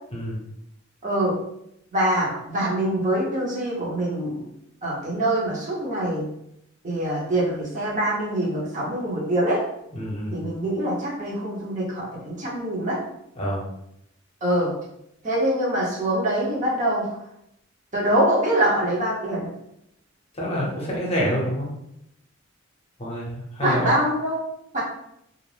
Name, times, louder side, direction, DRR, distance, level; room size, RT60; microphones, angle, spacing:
voice 1, 1.0-1.4 1.9-4.4 4.8-6.3 6.8-9.6 10.3-13.0 14.4-14.7 15.2-17.1 17.9-19.5 23.6-24.4 24.7-24.8, right 1 dB, 40° right, -4 dB, 0.8 m, -24 dB
voice 2, 10.0-10.3 13.4-13.6 20.3-21.7 23.0-23.3 23.5-23.9, equal, 30° left, -4 dB, 0.8 m, -26 dB
2.5 x 2.1 x 3.2 m, 0.77 s
head